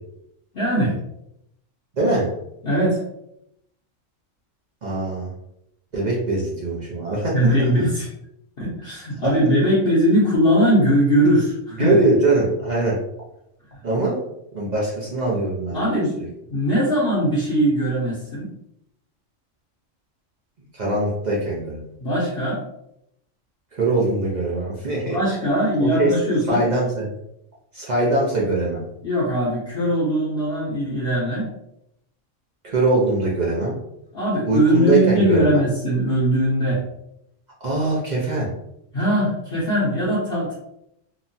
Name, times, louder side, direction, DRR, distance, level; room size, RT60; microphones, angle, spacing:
voice 1, 0.5-1.0 2.6-3.0 7.3-8.1 8.6-12.0 13.7-13.8 15.7-16.2 16.5-18.5 22.0-22.6 25.0-26.6 29.0-31.5 34.1-36.8 38.9-40.5, equal, 55° left, -6 dB, 0.8 m, -20 dB
voice 2, 1.9-2.3 4.8-5.3 5.9-7.7 11.8-13.0 13.8-14.2 14.5-16.3 20.7-21.9 23.7-25.2 25.8-26.1 26.5-27.1 27.7-28.8 32.6-33.7 34.5-35.6 37.6-38.5, right 2 dB, 50° right, -4 dB, 0.5 m, -22 dB
2.9 x 2.2 x 2.6 m, 0.79 s
omnidirectional pair, 1.4 m